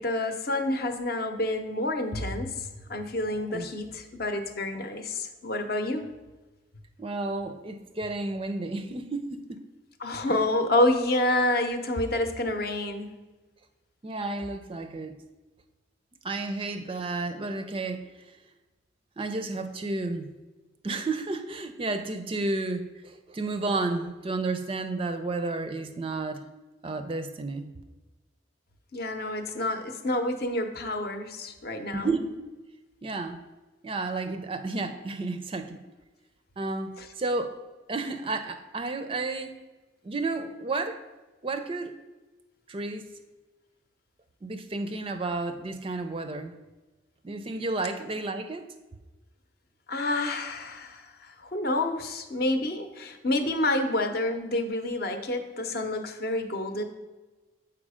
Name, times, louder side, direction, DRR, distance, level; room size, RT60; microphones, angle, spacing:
voice 1, 0.0-6.1 10.0-13.1 28.9-32.1 49.9-56.8, left 1 dB, 50° left, 6 dB, 0.7 m, -28 dB
voice 2, 7.0-9.6 10.3-10.4 14.0-15.2 16.2-18.1 19.2-20.3 20.8-26.4 26.8-27.7 31.9-32.3 33.0-33.4 33.8-35.8 36.6-37.6 37.9-39.6 40.0-41.0 41.4-42.0 42.7-43.0 44.4-46.6 47.2-48.6, right 3 dB, 30° right, 8 dB, 0.4 m, -32 dB
7.2 x 4.7 x 4.9 m, 1.2 s
head